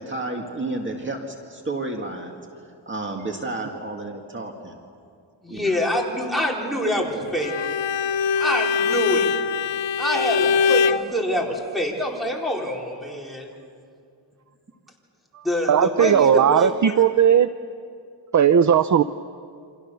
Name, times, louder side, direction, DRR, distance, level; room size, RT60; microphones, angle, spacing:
voice 1, 0.0-2.4 2.9-4.7 5.5-5.8, right 2 dB, 25° right, 2 dB, 2.0 m, -31 dB
voice 2, 5.4-7.5 8.4-9.3 10.0-13.5 15.4-16.9, left 1 dB, ahead, -1 dB, 4.2 m, -26 dB
Bowed string instrument, 7.4-11.1, left 6 dB, 75° left, 0.8 m, -22 dB
voice 3, 15.3-17.5 18.3-19.0, right 8 dB, 40° right, 12 dB, 0.6 m, -17 dB
29.0 x 26.0 x 7.0 m, 2.3 s
wide cardioid pair, 135°, 44 cm